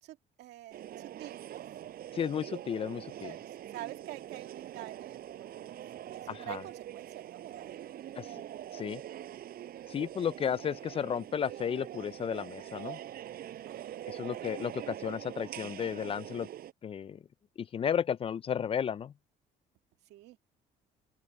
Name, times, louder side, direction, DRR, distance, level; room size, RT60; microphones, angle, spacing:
voice 1, 0.0-1.7 3.2-7.9 13.6-14.4 20.1-20.4, right 15 dB, 85° right, 2.3 m, -48 dB
sound 1, 0.7-16.7, right 11 dB, 65° right, 5.4 m, -44 dB
voice 2, 2.1-3.4 6.3-6.6 8.2-8.4 8.7-9.0 9.9-13.0 14.1-16.5 16.8-17.2 17.6-19.1, left 8 dB, 35° left, 0.4 m, -33 dB
open air
cardioid pair, 110°, 17 cm